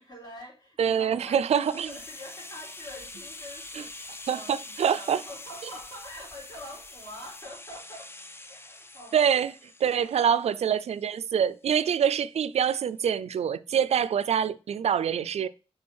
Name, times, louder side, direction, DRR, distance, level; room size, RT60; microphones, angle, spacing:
voice 1, 0.0-8.1 8.5-9.4 9.9-10.3, left 1 dB, 35° left, 3.8 m, -45 dB
voice 2, 0.8-1.9 4.3-5.2 9.1-9.5 9.8-15.5, right 8 dB, 90° right, 0.4 m, -25 dB
sound 1, 1.5-11.3 11.6-11.7, left 2 dB, 20° left, 0.6 m, -45 dB
sound 2, 1.9-7.5, left 4 dB, 70° left, 1.0 m, -51 dB
6.1 x 3.8 x 6.1 m
wide cardioid pair, 100°, 11 cm